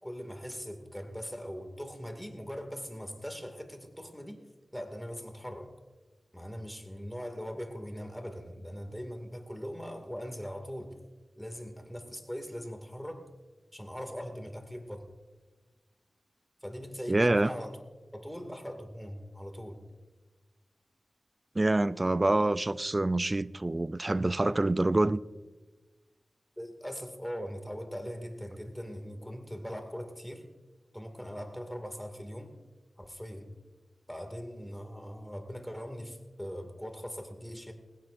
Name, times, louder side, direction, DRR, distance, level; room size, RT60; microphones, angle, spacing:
voice 1, 0.0-4.4 4.7-5.7 6.3-11.0 11.4-13.3 13.7-15.1 16.6-17.8 18.1-19.8 26.6-30.5 30.9-32.6 33.0-33.5 34.1-37.7, equal, 5° left, 2.4 m, -41 dB
voice 2, 17.1-17.5 21.6-25.2, right 2 dB, 30° right, 0.4 m, -26 dB
20.0 x 17.0 x 2.6 m
cardioid pair, 50°, 0 cm